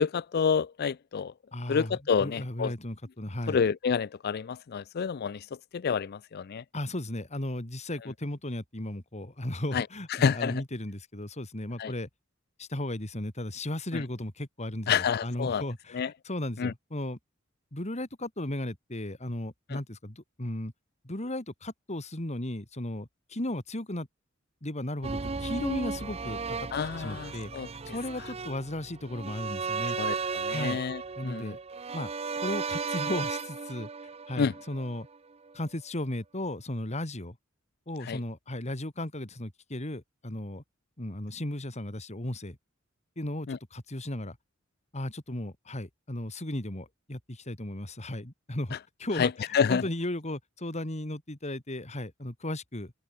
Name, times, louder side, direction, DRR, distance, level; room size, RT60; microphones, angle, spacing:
voice 1, 0.0-1.3 1.7-2.7 3.5-5.4 5.7-6.6 9.7-9.8 10.1-10.6 11.8-11.9 13.9-14.0 14.9-15.6 15.9-16.1 16.6-16.7 19.7-19.8 26.7-27.7 30.0-31.5 34.4-34.5 38.0-38.2 43.5-43.6 49.2-49.8, left 6 dB, 50° left, 0.4 m, -28 dB
voice 2, 1.5-3.6 6.7-12.1 12.6-17.2 17.7-20.7 21.0-24.1 24.6-26.7 27.0-27.5 27.8-30.0 30.5-30.8 31.2-31.6 31.9-32.1 32.4-33.9 34.3-35.1 35.5-37.4 37.9-40.6 41.0-42.6 43.2-44.4 44.9-52.9, left 1 dB, 35° left, 2.9 m, -35 dB
sound 1, 25.0-35.2 35.5-35.6, right 5 dB, 30° right, 0.7 m, -35 dB
open air
head